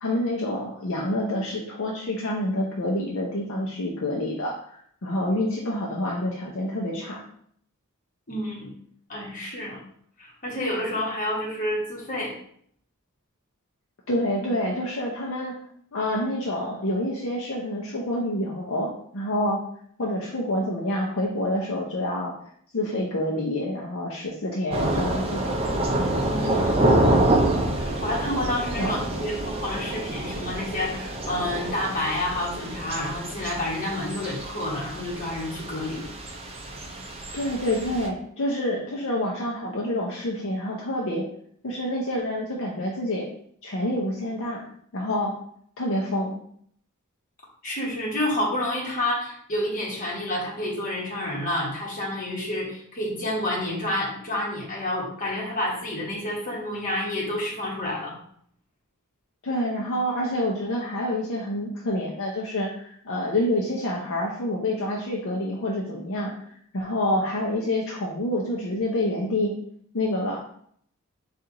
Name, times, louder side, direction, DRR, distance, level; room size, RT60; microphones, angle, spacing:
voice 1, 0.0-7.2 14.1-15.5 15.9-19.6 20.0-22.3 22.7-25.5 28.8-28.9 37.3-41.2 41.6-43.3 43.6-44.6 44.9-45.3 45.8-46.3 59.4-66.5 66.7-69.5 69.9-70.4, left 1 dB, 60° left, -3 dB, 0.7 m, -27 dB
voice 2, 8.3-8.7 9.1-9.8 10.2-12.3 26.2-26.8 27.7-36.1 47.6-58.2, left 1 dB, 40° left, -4 dB, 1.4 m, -29 dB
Thunder / Rain, 24.7-38.1, right 1 dB, 25° right, 0.4 m, -27 dB
4.3 x 2.5 x 3.8 m, 0.64 s
head